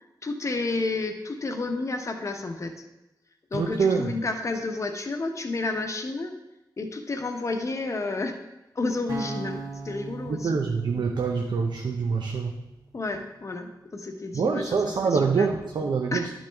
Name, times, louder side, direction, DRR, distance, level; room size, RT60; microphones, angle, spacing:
voice 1, 0.2-2.8 3.5-6.3 6.8-8.4 8.7-10.6 12.9-14.6 15.0-15.5 16.1-16.3, left 3 dB, 40° left, 5 dB, 0.9 m, -31 dB
voice 2, 3.5-4.1 10.3-12.5 14.3-16.3, right 5 dB, 75° right, 3 dB, 0.6 m, -25 dB
sound 1, 9.1-13.2, right 3 dB, 50° right, 1.0 m, -40 dB
11.5 x 6.2 x 3.5 m, 0.96 s
wide cardioid pair, 150°, 8 cm